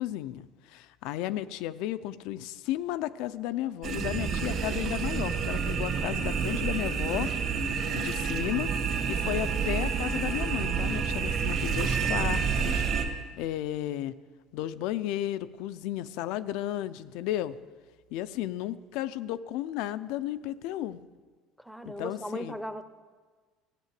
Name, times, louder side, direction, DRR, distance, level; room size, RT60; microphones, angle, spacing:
voice 1, 0.0-7.3 7.9-8.7 9.1-12.8 13.4-14.1 14.5-17.6 18.1-21.0 21.8-22.6, left 13 dB, 75° left, 14 dB, 0.5 m, -33 dB
sound 1, 3.8-13.0, right 6 dB, 50° right, 1.9 m, -29 dB
voice 2, 21.6-22.8, equal, ahead, 11 dB, 0.7 m, -37 dB
14.5 x 8.4 x 7.5 m, 1.4 s
cardioid pair, 150°, 0 cm